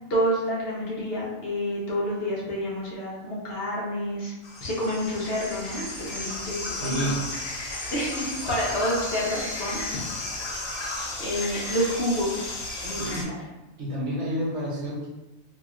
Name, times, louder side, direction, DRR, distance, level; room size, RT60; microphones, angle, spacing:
voice 1, 0.1-4.3 4.6-7.1 7.6-10.0 10.7-12.6 12.8-13.4, equal, 55° left, -5 dB, 0.9 m, -29 dB
sound 1, 4.4-13.2, left 2 dB, 80° left, 1.1 m, -34 dB
voice 2, 6.7-7.2 13.0-13.3 13.8-15.1, right 1 dB, 65° right, -4 dB, 1.1 m, -29 dB
2.9 x 2.9 x 2.4 m, 0.99 s
omnidirectional pair, 1.3 m